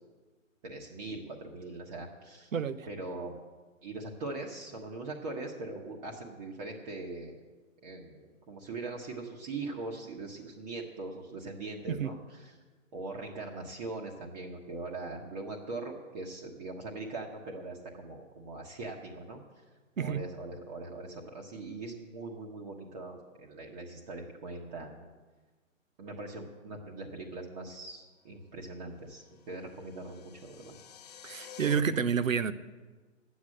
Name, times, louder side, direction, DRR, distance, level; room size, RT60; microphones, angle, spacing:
voice 1, 0.6-2.5 2.9-3.4 3.8-7.3 7.8-12.6 12.9-19.4 20.0-25.0 26.0-30.7, right 2 dB, 30° right, -1 dB, 1.4 m, -41 dB
voice 2, 2.5-2.9 11.9-12.1 20.0-20.2 31.2-32.5, right 7 dB, 80° right, 14 dB, 0.9 m, -29 dB
sound 1, 29.2-31.8, left 9 dB, 30° left, 0.6 m, -49 dB
11.5 x 8.4 x 7.8 m, 1.3 s
hypercardioid pair, 145°, 39 cm